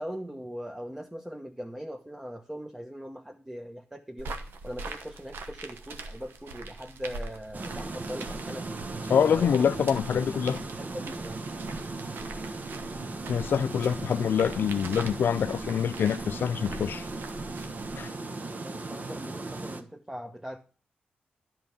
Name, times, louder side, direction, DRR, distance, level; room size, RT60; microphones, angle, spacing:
voice 1, 0.0-4.4 4.6-8.6 9.1-9.9 10.7-11.4 18.5-20.6, equal, 10° right, 1.0 m, -40 dB
sound 1, 4.2-18.1, right 3 dB, 80° right, 1.1 m, -43 dB
sound 2, 7.5-19.8, right 3 dB, 50° right, 1.1 m, -37 dB
voice 2, 9.1-10.6 13.3-17.1 18.0-18.1, left 8 dB, 70° left, 0.4 m, -25 dB
10.5 x 4.7 x 6.7 m
supercardioid pair, 40°, 4 cm